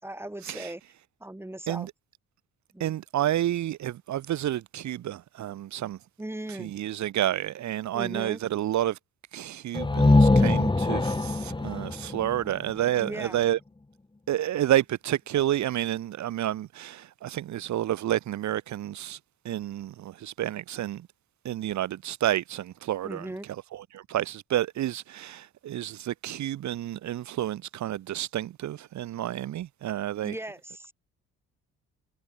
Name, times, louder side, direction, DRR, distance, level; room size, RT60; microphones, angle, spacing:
voice 1, 0.0-0.8 1.2-1.9 2.7-3.0 6.2-6.7 7.9-8.4 13.0-13.4 23.0-23.5 30.2-30.9, right 1 dB, 10° right, 3.8 m, -38 dB
voice 2, 2.8-6.0 6.6-9.0 9.3-13.6 14.3-19.2 19.4-21.1 21.4-23.3 23.7-30.3, right 12 dB, 70° right, 1.3 m, -30 dB
sound 1, 9.7-13.5, left 2 dB, 15° left, 2.6 m, -23 dB
cardioid pair, 90°, 30 cm